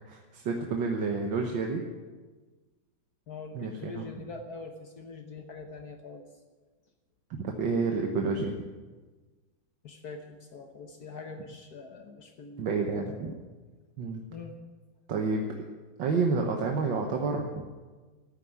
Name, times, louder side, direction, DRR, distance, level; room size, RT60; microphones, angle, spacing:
voice 1, 0.1-1.8 3.6-4.1 7.4-8.5 12.6-13.3 14.0-14.2 15.1-15.7 16.0-17.6, right 4 dB, 85° right, 2 dB, 1.9 m, -29 dB
voice 2, 3.3-6.2 9.8-13.4 14.3-14.6, left 4 dB, 60° left, 5 dB, 1.5 m, -44 dB
14.0 x 9.1 x 9.5 m, 1.3 s
omnidirectional pair, 2.0 m